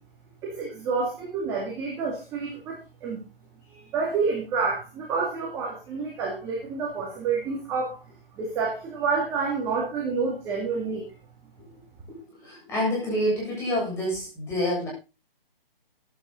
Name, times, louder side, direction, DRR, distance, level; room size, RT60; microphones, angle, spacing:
voice 1, 0.4-3.2 3.7-8.0 8.4-11.1, right 4 dB, 10° right, -3 dB, 2.2 m, -29 dB
voice 2, 12.1-14.9, equal, 10° left, -4 dB, 7.3 m, -28 dB
15.0 x 11.5 x 4.0 m, 0.30 s
hypercardioid pair, 165°, 29 cm